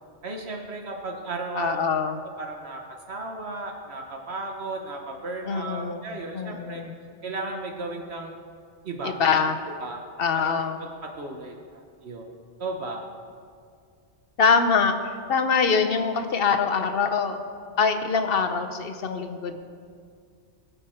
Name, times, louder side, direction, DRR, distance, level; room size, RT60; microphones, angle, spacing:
voice 1, 0.2-1.8 2.4-2.8 3.1-6.8 7.2-8.3 8.8-9.2 9.8-10.0 10.3-10.6 11.0-12.3 12.6-13.0, right 2 dB, 70° right, 2 dB, 1.2 m, -34 dB
voice 2, 1.5-2.2 5.5-6.9 9.0-9.6 10.2-10.9 14.4-17.4 17.8-19.6, left 5 dB, 60° left, 7 dB, 1.0 m, -24 dB
20.0 x 6.8 x 4.4 m, 2.2 s
omnidirectional pair, 1.2 m